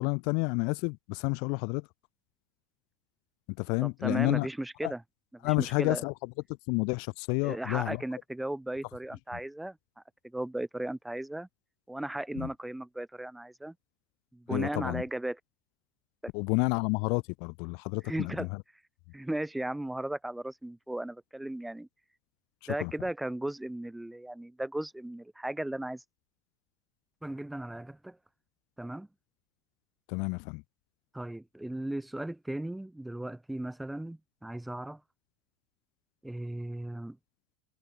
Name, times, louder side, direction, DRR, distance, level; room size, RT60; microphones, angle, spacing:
voice 1, 0.0-1.9 3.6-4.5 4.8-4.9 5.4-6.3 6.7-8.0 9.3-9.4 12.4-12.5 14.5-15.0 16.3-18.6 22.8-22.9 30.1-30.6, left 36 dB, 65° left, 1.0 m, -30 dB
voice 2, 3.8-5.0 5.4-6.0 7.4-9.8 10.2-11.5 11.9-13.7 14.3-15.4 16.2-16.3 18.1-18.5 19.1-21.9 22.7-26.0 27.2-28.2 28.8-29.1 31.1-35.0 36.2-37.2, right 1 dB, 5° right, 5.6 m, -36 dB
supercardioid pair, 125°, 0 cm